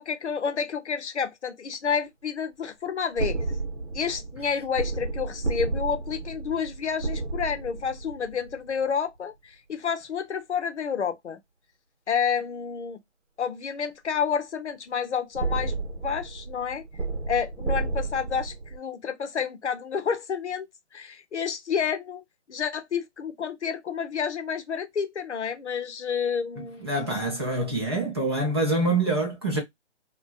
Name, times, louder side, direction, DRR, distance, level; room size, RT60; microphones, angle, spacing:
voice 1, 0.0-3.4 3.9-11.4 12.1-13.0 13.4-16.8 17.3-20.7 20.9-22.2 22.5-26.9, left 7 dB, 70° left, 0.6 m, -29 dB
sound 1, 3.2-8.8 15.3-18.8, right 3 dB, 90° right, 0.8 m, -32 dB
voice 2, 26.8-29.6, right 2 dB, 20° right, 0.5 m, -25 dB
2.5 x 2.2 x 2.3 m
figure-of-eight pair, 145°, 36 cm